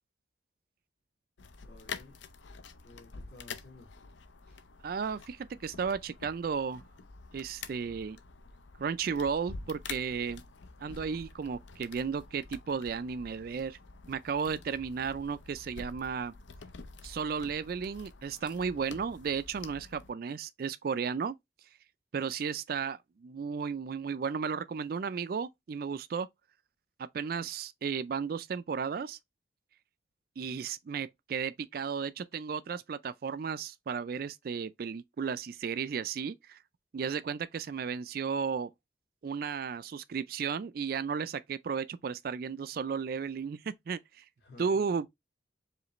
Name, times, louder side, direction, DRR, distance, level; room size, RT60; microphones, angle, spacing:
sound 1, 1.4-20.1, left 4 dB, 80° left, 0.7 m, -48 dB
voice 1, 1.6-2.2 2.8-3.9 44.4-44.7, left 3 dB, 60° left, 2.1 m, -54 dB
voice 2, 4.8-6.8 7.3-8.2 8.8-10.4 10.8-13.8 14.1-16.3 17.0-21.3 22.1-26.3 27.0-29.2 30.4-36.6 36.9-38.7 39.2-44.2 44.6-45.1, right 6 dB, 50° right, 0.3 m, -34 dB
5.0 x 3.2 x 3.0 m
head